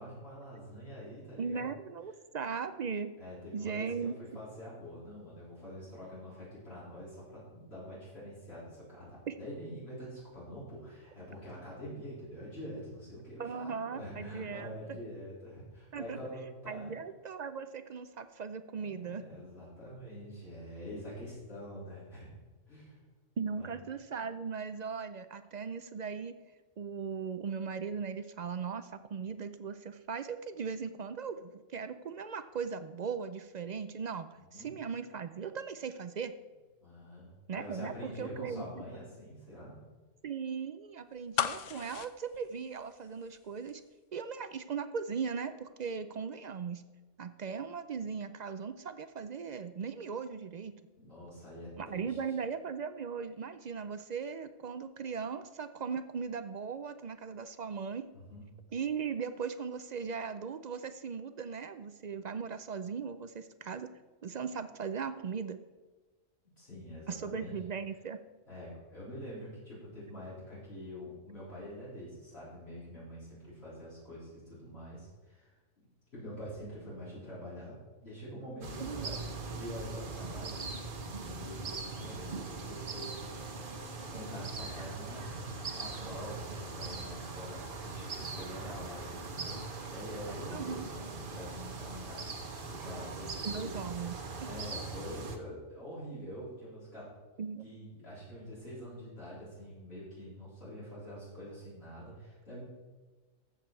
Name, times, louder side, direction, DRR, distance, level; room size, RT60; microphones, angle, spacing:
voice 1, 0.0-1.7 3.2-16.9 18.7-23.0 23.5-23.7 34.3-34.7 36.8-39.8 51.0-52.2 58.1-58.4 66.6-67.6 68.5-75.6 76.1-77.7 78.0-79.2 79.5-80.6 81.1-83.1 84.1-85.2 85.7-93.8 94.4-97.1 97.6-102.6, equal, 55° left, -9 dB, 4.3 m, -45 dB
voice 2, 1.4-3.1 3.5-4.4 9.3-9.4 13.4-15.0 15.9-16.2 16.7-19.2 23.4-26.3 26.8-36.3 37.5-38.7 40.2-43.8 44.1-46.8 47.2-50.7 51.8-58.1 58.7-63.9 64.2-65.6 67.1-68.2 78.8-79.1 90.5-90.9 93.4-94.2 97.4-97.7, right 6 dB, 65° right, 11 dB, 0.4 m, -38 dB
sound 1, 41.3-43.4 43.7-43.8, left 10 dB, 75° left, 1.0 m, -35 dB
sound 2, 78.6-95.4, right 3 dB, 45° right, 1.2 m, -41 dB
14.0 x 7.4 x 4.6 m, 1.3 s
omnidirectional pair, 1.3 m